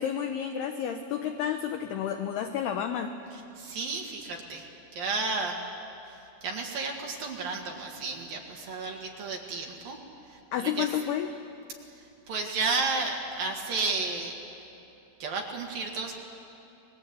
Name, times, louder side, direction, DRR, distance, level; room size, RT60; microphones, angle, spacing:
voice 1, 0.0-3.1 10.5-11.4, left 9 dB, 80° left, 6 dB, 2.3 m, -30 dB
voice 2, 3.6-4.7 4.9-5.6 6.1-10.0 10.3-10.9 12.3-14.4 15.2-16.1, right 4 dB, 60° right, 1 dB, 2.9 m, -32 dB
29.0 x 21.5 x 8.4 m, 2.8 s
omnidirectional pair, 5.7 m